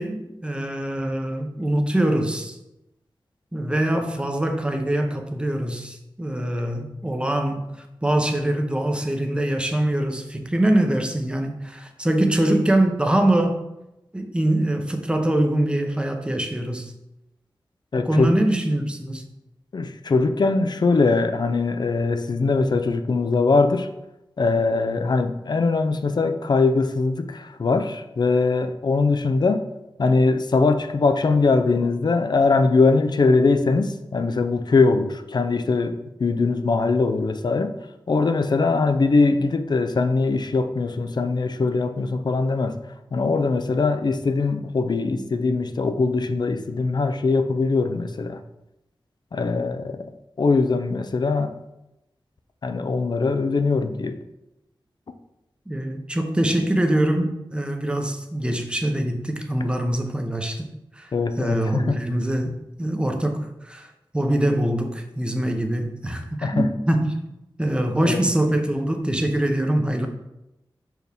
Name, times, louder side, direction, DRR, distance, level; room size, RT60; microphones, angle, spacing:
voice 1, 0.0-2.6 3.5-13.6 14.1-16.9 18.0-19.2 55.7-60.7 61.0-61.1 61.4-62.5 62.8-67.1 67.6-70.1, right 1 dB, 10° right, 4 dB, 0.7 m, -23 dB
voice 2, 17.9-18.3 19.7-23.9 24.4-29.6 30.0-37.7 38.1-42.8 43.1-48.4 49.3-50.1 50.4-51.6 52.6-54.2 61.1-62.0 66.4-66.7 67.9-68.2, left 3 dB, 55° left, 8 dB, 0.5 m, -21 dB
5.9 x 4.5 x 3.5 m, 0.92 s
wide cardioid pair, 100°, 9 cm